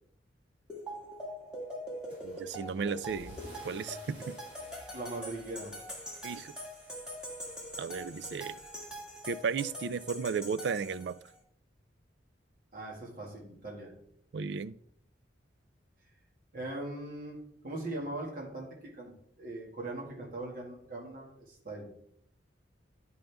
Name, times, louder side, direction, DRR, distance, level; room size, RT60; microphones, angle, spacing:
sound 1, 0.7-11.3, equal, 5° right, 1.7 m, -43 dB
Car / Engine starting / Accelerating revving vroom, 2.1-9.4, equal, 30° right, 3.4 m, -55 dB
voice 1, 2.2-3.4 3.6-4.4 6.2-6.5 7.8-8.6 9.3-11.2 14.3-14.7, right 5 dB, 65° right, 15 dB, 0.4 m, -34 dB
voice 2, 4.9-5.8 12.7-13.9 16.5-17.4 17.6-21.9, right 2 dB, 50° right, -2 dB, 1.9 m, -40 dB
10.5 x 5.3 x 3.4 m, 0.68 s
head